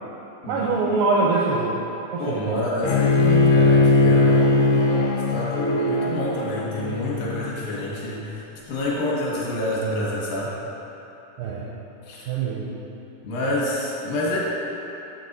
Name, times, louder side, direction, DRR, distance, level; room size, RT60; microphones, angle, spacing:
voice 1, 0.5-1.8 2.1-2.6 11.4-11.7 12.3-12.8, right 3 dB, 85° right, -4 dB, 2.0 m, -23 dB
voice 2, 2.2-8.4 8.7-10.5 12.1-12.3 13.2-14.4, left 1 dB, 70° left, -6 dB, 2.5 m, -28 dB
Bowed string instrument, 2.8-7.9, left 3 dB, 90° left, 2.6 m, -20 dB
6.8 x 6.2 x 3.9 m, 3.0 s
omnidirectional pair, 4.6 m